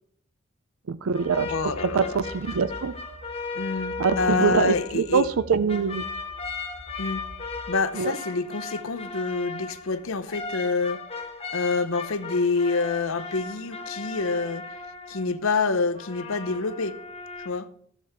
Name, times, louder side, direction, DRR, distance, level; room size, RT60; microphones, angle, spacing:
sound 1, 0.9-7.8, right 2 dB, 45° right, 1.0 m, -45 dB
voice 1, 0.9-1.5 1.9-2.9 4.0-6.0 8.0-8.2, right 6 dB, 80° right, 0.5 m, -24 dB
sound 2, 1.1-5.4 5.7-15.5 15.9-17.5, left 4 dB, 30° left, 1.3 m, -37 dB
voice 2, 1.5-2.2 3.5-5.3 7.0-7.2 7.7-11.0 11.5-14.7 15.1-17.0 17.4-17.7, left 4 dB, 75° left, 0.8 m, -27 dB
14.5 x 7.0 x 4.4 m
head